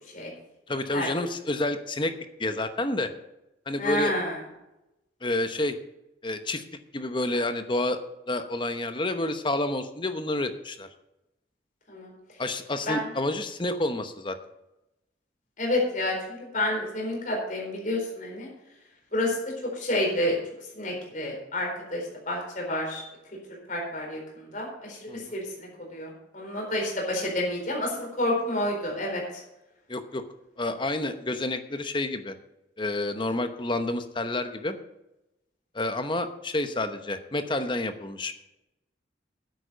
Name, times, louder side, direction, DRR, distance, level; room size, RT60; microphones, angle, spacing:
voice 1, 0.7-2.1 2.4-3.1 3.7-4.1 5.2-5.8 6.2-6.6 6.9-8.0 8.3-10.9 12.4-14.4 25.1-25.2 29.9-30.2 30.6-32.3 32.8-34.8 35.7-38.3, left 2 dB, 25° left, 9 dB, 0.9 m, -29 dB
voice 2, 3.8-4.4 11.9-12.1 12.9-13.1 15.6-18.5 19.1-19.4 19.6-20.4 20.7-23.0 23.7-29.4, left 1 dB, 45° left, 0 dB, 4.2 m, -29 dB
9.9 x 8.6 x 6.7 m, 0.91 s
head